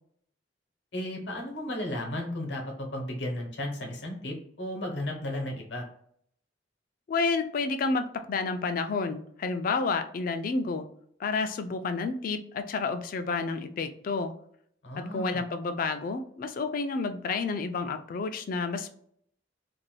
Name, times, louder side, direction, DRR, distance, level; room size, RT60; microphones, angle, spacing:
voice 1, 0.9-5.8 14.8-15.4, left 1 dB, 70° left, 2 dB, 0.8 m, -34 dB
voice 2, 7.1-10.9 11.2-14.3 15.0-18.9, left 4 dB, 50° left, 8 dB, 0.3 m, -30 dB
2.5 x 2.1 x 3.2 m, 0.65 s
head